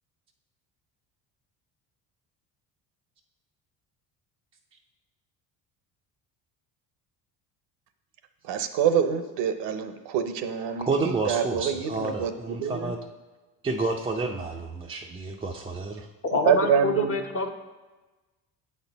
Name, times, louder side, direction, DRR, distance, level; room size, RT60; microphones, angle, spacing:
voice 1, 8.4-12.9 16.3-17.2, right 7 dB, 75° right, 9 dB, 0.7 m, -26 dB
voice 2, 10.9-13.0 13.6-16.1, right 3 dB, 15° right, 0 dB, 0.4 m, -30 dB
voice 3, 16.3-17.5, left 3 dB, 35° left, 4 dB, 0.7 m, -27 dB
7.9 x 4.3 x 4.0 m, 1.2 s
supercardioid pair, 90°, 41 cm